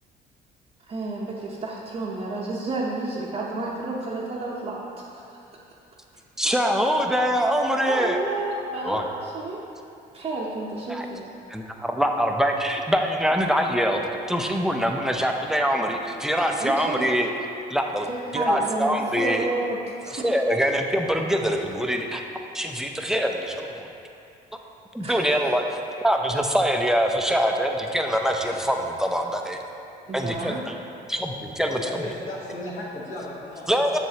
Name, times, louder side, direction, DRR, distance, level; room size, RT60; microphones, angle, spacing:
voice 1, 0.9-5.3 7.9-9.6 10.1-11.3 16.6-17.1 18.1-20.2 25.0-25.5 30.1-30.6, right 2 dB, 35° right, -5 dB, 0.7 m, -31 dB
voice 2, 6.4-8.2 8.8-9.1 10.9-11.1 11.5-14.0 14.3-17.3 17.7-18.1 18.3-19.5 20.1-22.2 22.5-23.9 24.9-25.6 26.0-29.6 30.1-30.7 31.1-32.0 33.7-34.0, equal, 5° right, 2 dB, 0.5 m, -24 dB
voice 3, 31.7-33.7, left 2 dB, 50° left, -7 dB, 1.1 m, -35 dB
7.4 x 6.8 x 2.8 m, 2.7 s
cardioid pair, 110°, 17 cm